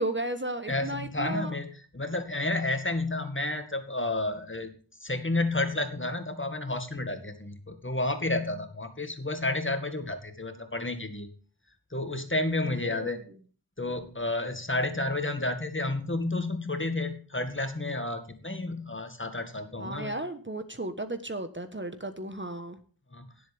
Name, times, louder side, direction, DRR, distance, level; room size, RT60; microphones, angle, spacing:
voice 1, 0.0-1.6 12.6-13.1 19.8-22.8, right 1 dB, 30° right, 9 dB, 1.3 m, -34 dB
voice 2, 0.7-1.7 1.9-4.7 5.0-11.3 11.9-13.2 13.8-20.1 23.1-23.3, left 2 dB, 30° left, 8 dB, 2.1 m, -31 dB
18.0 x 7.8 x 3.6 m, 0.40 s
wide cardioid pair, 65°, 41 cm